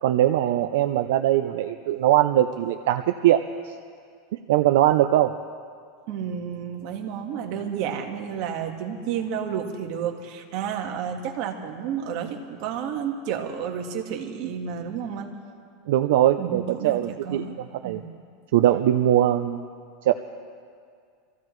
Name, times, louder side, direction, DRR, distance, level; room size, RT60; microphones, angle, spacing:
voice 1, 0.0-3.7 4.5-5.4 15.9-18.0 18.5-19.7 20.0-20.1, right 12 dB, 75° right, 7 dB, 0.5 m, -21 dB
voice 2, 6.1-15.3 16.4-17.6 17.8-18.1, right 8 dB, 50° right, 3 dB, 1.5 m, -31 dB
25.5 x 15.0 x 3.2 m, 2.2 s
supercardioid pair, 150°, 0 cm